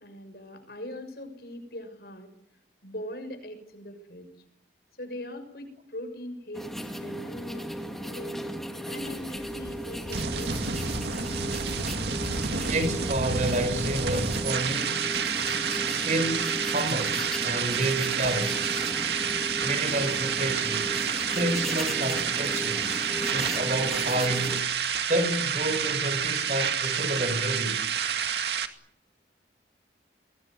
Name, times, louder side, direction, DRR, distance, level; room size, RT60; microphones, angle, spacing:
voice 1, 0.0-2.3 2.8-4.3 5.0-8.4 8.8-11.0, left 1 dB, 60° left, 6.7 m, -41 dB
sound 1, 6.5-24.6, equal, ahead, 2.6 m, -36 dB
sound 2, 9.0-28.7, right 7 dB, 70° right, 2.3 m, -29 dB
voice 2, 12.6-15.3 16.0-18.7 19.6-20.9 21.3-22.9 23.3-24.6 25.1-27.8, right 1 dB, 45° right, 5.0 m, -29 dB
23.5 x 20.0 x 9.8 m
head